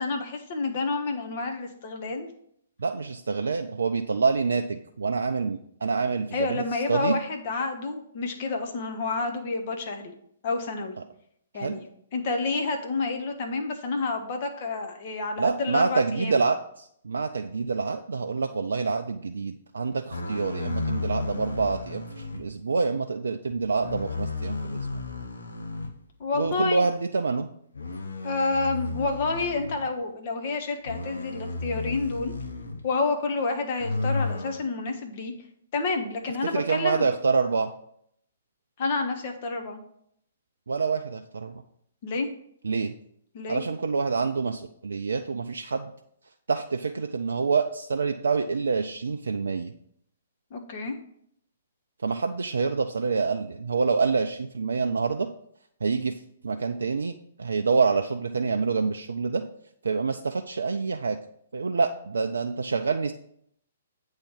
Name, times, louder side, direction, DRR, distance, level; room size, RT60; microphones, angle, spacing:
voice 1, 0.0-2.3 6.3-10.1 10.4-11.0 11.5-11.8 12.1-16.4 26.2-26.9 28.2-32.3 32.8-35.3 35.7-37.1 38.8-39.8 42.0-42.3 43.3-43.6 50.5-51.0, left 3 dB, 45° left, 4 dB, 1.1 m, -29 dB
voice 2, 2.8-7.2 11.6-11.7 15.4-24.9 26.3-27.5 36.4-37.7 40.7-41.6 42.6-42.9 43.5-45.9 46.5-49.7 52.0-55.3 55.8-59.4 59.8-61.2 61.5-63.1, right 4 dB, 70° right, 5 dB, 0.4 m, -27 dB
sound 1, 20.1-22.5 23.5-26.0 26.4-26.7 27.7-29.9 30.9-32.8 33.8-34.6, left 3 dB, 75° left, 0.9 m, -33 dB
8.2 x 3.2 x 5.7 m, 0.69 s
figure-of-eight pair, 120°, 0 cm